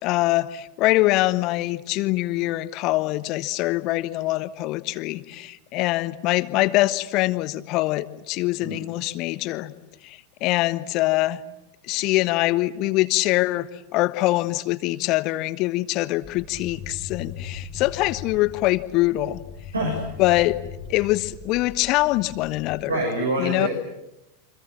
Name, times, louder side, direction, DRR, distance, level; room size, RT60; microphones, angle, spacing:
voice 1, 0.0-9.7 10.0-11.4 11.9-19.4 20.2-20.6 20.9-22.9 23.4-23.7, left 18 dB, 40° left, 14 dB, 1.3 m, -23 dB
sound 1, 16.2-22.8, left 6 dB, 20° left, 2.5 m, -39 dB
voice 2, 22.9-23.7, right 1 dB, 75° right, 1 dB, 7.1 m, -25 dB
29.0 x 25.5 x 7.5 m, 0.92 s
figure-of-eight pair, 90°, 0 cm